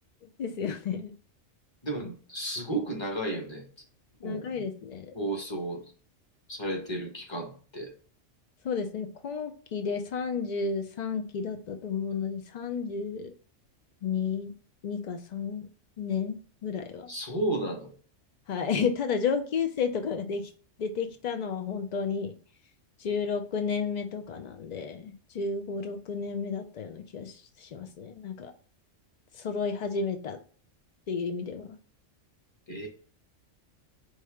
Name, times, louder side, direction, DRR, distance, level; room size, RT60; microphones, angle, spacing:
voice 1, 0.4-1.1 4.2-5.1 8.6-13.3 14.0-14.5 14.8-15.7 16.0-17.1 18.5-20.5 20.8-22.3 23.0-28.5 29.3-30.4 31.1-31.7, left 5 dB, 85° left, 6 dB, 0.3 m, -32 dB
voice 2, 1.8-3.6 4.2-4.5 5.1-5.8 6.5-7.9 17.1-17.9 32.7-32.9, right 1 dB, 25° left, 1 dB, 0.9 m, -33 dB
4.8 x 2.8 x 3.5 m, 0.43 s
omnidirectional pair, 1.3 m